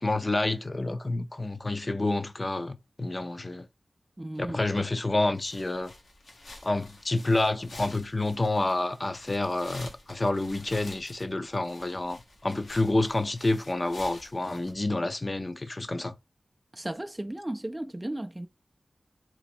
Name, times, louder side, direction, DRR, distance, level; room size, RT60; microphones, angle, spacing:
voice 1, 0.0-3.7 4.5-5.9 6.6-16.1, left 2 dB, 35° left, 0.6 m, -28 dB
voice 2, 4.2-4.6 16.7-18.5, right 1 dB, 20° right, 0.3 m, -35 dB
sound 1, 5.3-14.7, left 2 dB, 85° left, 1.2 m, -49 dB
3.0 x 2.9 x 4.4 m
wide cardioid pair, 65°, 0 cm